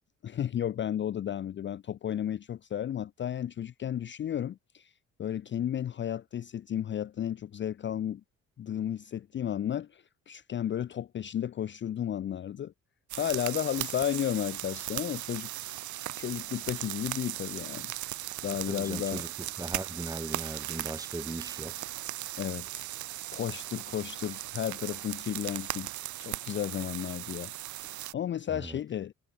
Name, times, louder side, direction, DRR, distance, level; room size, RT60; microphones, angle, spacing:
voice 1, 0.2-4.9 5.2-8.2 8.6-12.7 13.1-15.5 16.2-17.9 18.4-19.2 22.4-22.9 23.3-25.9 26.2-29.1, left 10 dB, 40° left, 0.5 m, -33 dB
sound 1, 13.1-28.1, right 15 dB, 75° right, 0.8 m, -38 dB
voice 2, 18.7-19.3 19.6-21.7 28.5-28.8, right 2 dB, 10° right, 1.7 m, -38 dB
cardioid pair, 90°, 30 cm